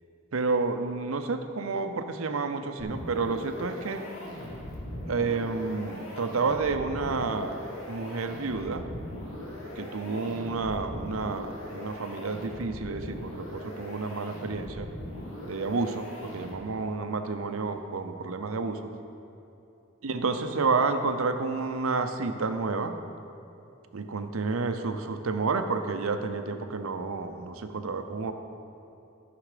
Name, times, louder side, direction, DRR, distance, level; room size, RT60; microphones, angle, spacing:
voice 1, 0.3-4.0 5.1-7.6 7.9-8.8 9.8-14.9 15.4-18.8 20.0-23.0 23.9-28.3, right 4 dB, 80° right, 8 dB, 0.7 m, -30 dB
sound 1, 2.8-16.9, left 1 dB, 75° left, 2.0 m, -40 dB
13.0 x 5.9 x 5.0 m, 2.8 s
head